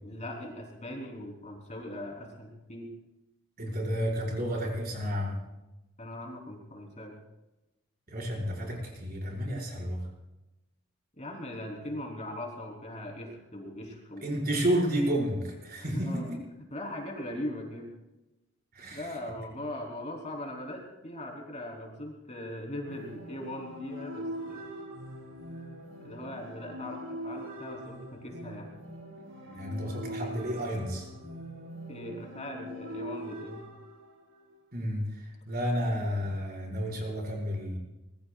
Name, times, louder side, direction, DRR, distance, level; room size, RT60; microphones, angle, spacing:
voice 1, 0.0-2.9 6.0-7.2 11.2-14.3 15.8-16.3 16.7-17.9 18.9-24.7 26.0-28.7 31.9-33.6, left 1 dB, 35° left, 0 dB, 3.7 m, -40 dB
voice 2, 3.6-5.4 8.1-10.1 14.2-16.4 18.7-19.1 29.4-31.1 34.7-37.8, equal, 45° right, -3 dB, 5.7 m, -31 dB
sound 1, 22.8-34.6, equal, 75° right, 3.6 m, -42 dB
25.5 x 21.5 x 2.5 m, 1.0 s
head